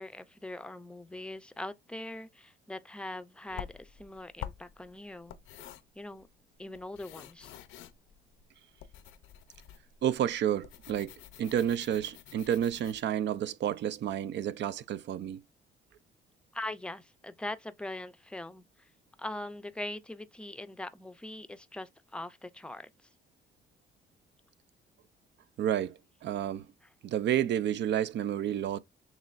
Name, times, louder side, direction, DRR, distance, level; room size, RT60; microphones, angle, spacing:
voice 1, 0.0-5.4 5.9-6.3 6.6-7.5 16.5-18.9 19.2-23.1 26.8-26.9, left 1 dB, 5° left, 0.5 m, -42 dB
sound 1, 3.6-13.0, left 11 dB, 85° left, 0.6 m, -48 dB
voice 2, 10.0-11.1 11.4-15.4 25.6-26.7 27.0-28.8, right 10 dB, 65° right, 0.5 m, -30 dB
6.3 x 3.0 x 2.5 m
cardioid pair, 90°, 20 cm